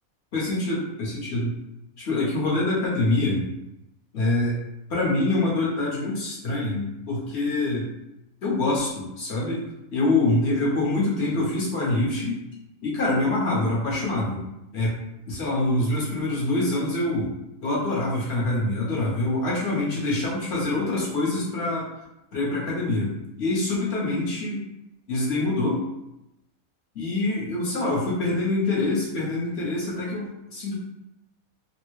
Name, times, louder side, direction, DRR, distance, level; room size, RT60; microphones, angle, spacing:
voice 1, 0.3-1.5 2.0-3.5 4.1-4.6 4.9-7.9 8.4-9.6 9.9-12.4 12.8-14.4 14.7-14.9 15.3-17.3 17.6-21.8 22.3-24.6 25.1-25.9 26.9-30.7, left 2 dB, 55° left, -5 dB, 1.1 m, -25 dB
3.3 x 2.1 x 3.1 m, 0.89 s
omnidirectional pair, 1.5 m